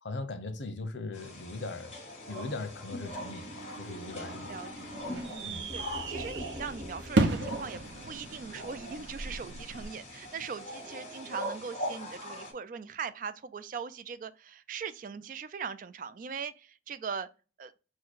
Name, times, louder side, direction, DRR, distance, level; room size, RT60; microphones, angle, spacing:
voice 1, 0.0-2.0 2.3-4.5 5.4-5.6, left 3 dB, 85° left, 0.8 m, -39 dB
sound 1, 1.1-12.5, equal, 35° left, 1.8 m, -42 dB
sound 2, 3.8-9.8, right 3 dB, 80° right, 0.7 m, -34 dB
voice 2, 4.5-17.3 17.6-17.7, right 6 dB, 45° right, 0.4 m, -40 dB
sound 3, 5.7-9.4, left 1 dB, 30° right, 0.9 m, -46 dB
4.6 x 2.2 x 4.5 m
head